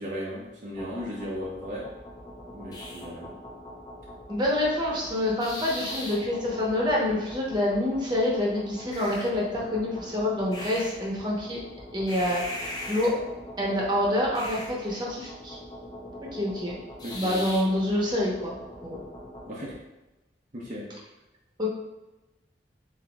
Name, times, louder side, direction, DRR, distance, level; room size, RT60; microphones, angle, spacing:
voice 1, 0.0-1.9 2.5-3.4 17.0-17.4 19.5-19.8 20.5-20.9, equal, 45° right, -5 dB, 0.8 m, -36 dB
sound 1, 0.7-19.5, left 1 dB, 20° left, 0.7 m, -41 dB
voice 2, 4.3-11.6 11.9-13.2 13.6-15.6 16.3-16.8 17.1-18.5 18.8-19.0 21.6-21.7, left 1 dB, 25° right, -4 dB, 1.0 m, -27 dB
7.6 x 2.8 x 2.4 m, 1.0 s
head